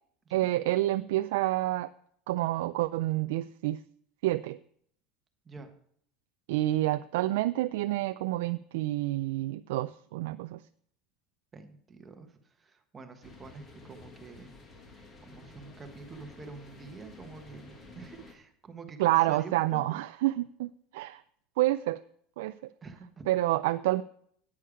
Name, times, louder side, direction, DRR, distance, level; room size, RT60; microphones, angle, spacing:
voice 1, 0.3-1.9 2.3-3.8 4.2-4.6 6.5-10.6 19.0-21.2 21.6-22.0 22.4-22.5 23.3-24.0, right 16 dB, 90° right, 12 dB, 0.3 m, -28 dB
voice 2, 11.5-14.5 14.9-20.0 22.8-23.3, right 4 dB, 15° right, 6 dB, 1.2 m, -47 dB
sound 1, 13.2-18.3, left 3 dB, 25° left, 1.6 m, -51 dB
10.0 x 8.6 x 4.9 m, 0.64 s
cardioid pair, 155°, 0 cm